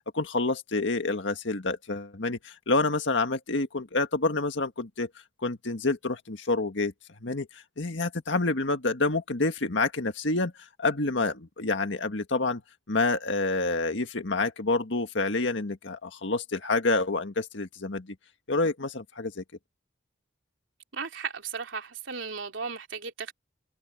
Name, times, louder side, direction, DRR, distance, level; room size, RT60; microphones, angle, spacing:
voice 1, 0.1-5.1 5.4-6.9 7.2-12.6 12.9-18.2 18.5-19.4, left 3 dB, 75° left, 1.7 m, -28 dB
voice 2, 20.9-23.3, right 5 dB, 80° right, 3.2 m, -35 dB
head